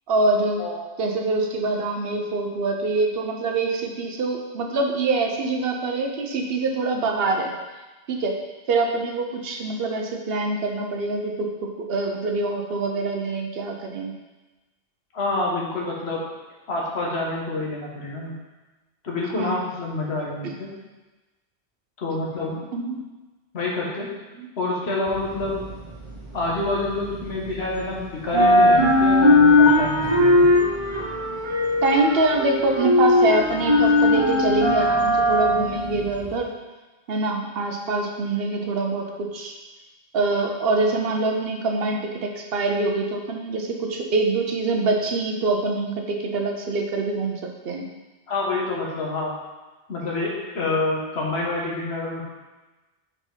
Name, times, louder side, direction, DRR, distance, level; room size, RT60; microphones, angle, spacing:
voice 1, 0.1-0.6 1.0-7.5 8.1-8.4 8.7-14.1 19.4-19.6 20.4-20.5 22.7-23.0 24.4-24.5 31.8-36.5 37.1-39.5 40.1-47.9, right 3 dB, 65° right, 2 dB, 0.9 m, -25 dB
voice 2, 15.1-16.2 16.7-18.3 19.0-20.7 22.0-22.7 23.5-24.1 24.6-25.7 26.3-30.5 48.3-49.3 49.9-52.2, left 2 dB, 75° left, -3 dB, 1.5 m, -27 dB
sound 1, 25.1-27.9 28.2-36.4, left 2 dB, 30° right, 0.8 m, -19 dB
5.1 x 5.0 x 3.8 m, 1.2 s
omnidirectional pair, 1.1 m